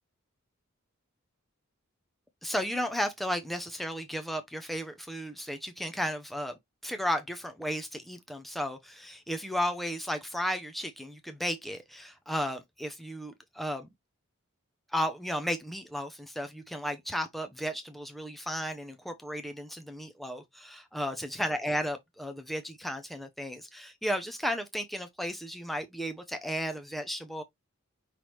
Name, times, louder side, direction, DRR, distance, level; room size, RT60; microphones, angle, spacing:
voice 1, 2.4-6.5 6.8-13.9 14.9-27.4, equal, ahead, 0.5 m, -34 dB
5.5 x 3.1 x 3.0 m
head